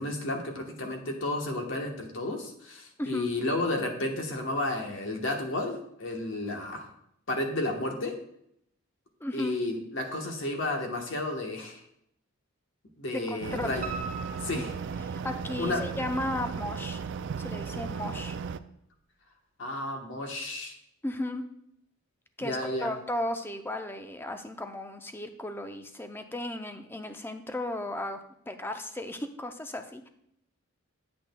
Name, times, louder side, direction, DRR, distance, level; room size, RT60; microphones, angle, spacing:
voice 1, 0.0-6.9 7.3-8.1 9.3-11.8 13.0-13.9 14.4-14.7 15.6-15.8 19.6-20.7 22.4-22.9, left 2 dB, 65° left, 3 dB, 1.1 m, -32 dB
voice 2, 3.0-3.3 9.2-9.5 13.1-13.8 15.0-17.0 17.4-18.4 21.0-21.4 22.4-30.1, left 1 dB, 10° left, 7 dB, 0.5 m, -35 dB
sound 1, 13.4-18.6, right 6 dB, 60° right, 0.3 m, -36 dB
Piano, 13.8-15.7 16.2-17.0 17.3-17.4 17.9-18.0 18.2-18.3, right 4 dB, 35° right, 1.4 m, -41 dB
8.6 x 8.0 x 2.2 m, 0.74 s
head